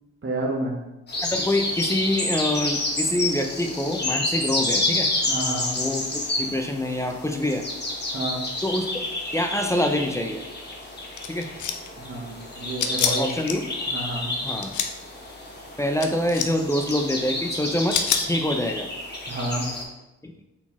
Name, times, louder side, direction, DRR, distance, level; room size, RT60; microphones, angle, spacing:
voice 1, 0.2-0.7 5.2-5.7 8.1-8.4 12.0-13.3 13.9-14.3 19.3-19.7, right 2 dB, 40° right, -3 dB, 1.2 m, -29 dB
sound 1, 1.1-19.8, left 2 dB, 35° left, 1.2 m, -29 dB
voice 2, 1.1-5.1 5.7-7.7 8.6-8.9 9.3-10.4 11.3-11.5 13.1-13.7 14.4-14.7 15.8-18.0 18.3-18.9 20.2-20.3, left 1 dB, 10° left, 4 dB, 0.5 m, -26 dB
sound 2, 11.2-11.9 12.8-13.5 14.5-14.9 16.0-16.5 16.8-16.9 17.9-18.2, left 8 dB, 75° left, 0.5 m, -26 dB
4.2 x 3.9 x 3.0 m, 0.95 s
cardioid pair, 60°, 30 cm